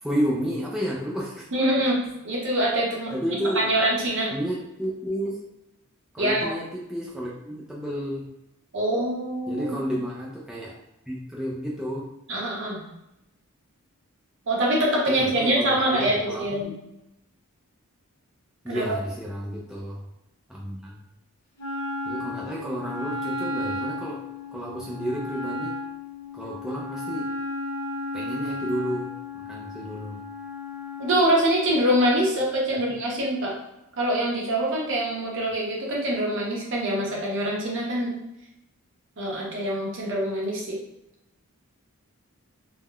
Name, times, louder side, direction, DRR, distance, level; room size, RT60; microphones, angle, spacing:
voice 1, 0.0-1.5 3.1-3.7 4.3-5.4 6.1-8.3 9.5-10.8 11.1-12.1 15.1-16.7 18.6-20.0 20.5-21.0 22.1-24.2 24.5-25.8 26.3-27.3 28.1-30.2 32.7-32.8, equal, ahead, -5 dB, 0.3 m, -31 dB
voice 2, 1.5-2.0 2.2-3.1 3.6-4.3 6.2-6.5 8.7-9.8 12.3-12.8 14.5-16.8 18.7-19.0 31.0-33.5 34.0-38.1 39.2-40.8, right 1 dB, 55° right, -3 dB, 0.8 m, -24 dB
Wind instrument woodwind instrument, 21.6-31.2, left 2 dB, 85° left, 0.9 m, -33 dB
3.5 x 2.0 x 2.2 m, 0.89 s
head